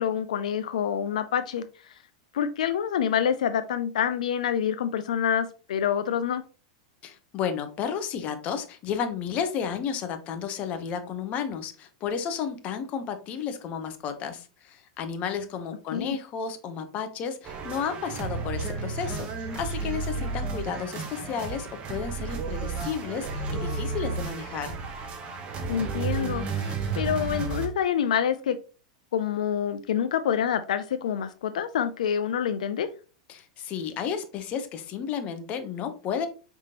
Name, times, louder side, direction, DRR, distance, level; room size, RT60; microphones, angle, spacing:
voice 1, 0.0-2.0 2.3-6.4 15.9-16.2 25.7-28.6 29.1-32.9, left 8 dB, 85° left, 10 dB, 0.4 m, -27 dB
voice 2, 7.0-24.8 33.3-36.3, left 7 dB, 35° left, 8 dB, 0.8 m, -32 dB
sound 1, 17.4-27.7, right 4 dB, 30° right, 0.9 m, -32 dB
5.0 x 3.6 x 2.8 m, 0.35 s
supercardioid pair, 130°, 4 cm